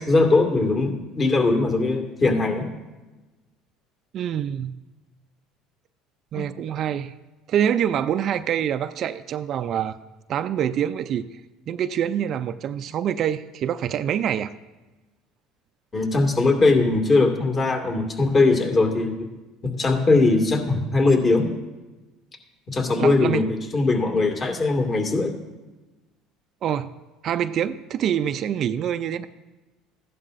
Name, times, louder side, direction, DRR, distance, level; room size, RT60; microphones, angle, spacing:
voice 1, 0.0-2.7 6.3-6.4 15.9-19.3 19.6-21.4 22.7-23.4 23.7-25.3, left 3 dB, 35° left, 3 dB, 2.2 m, -20 dB
voice 2, 4.1-4.8 6.3-7.1 7.5-10.0 10.3-11.2 11.7-14.5 23.0-23.5 26.6-26.9 27.2-29.3, right 9 dB, 50° right, 12 dB, 0.4 m, -25 dB
15.0 x 11.0 x 2.6 m, 1.1 s
supercardioid pair, 90°, 0 cm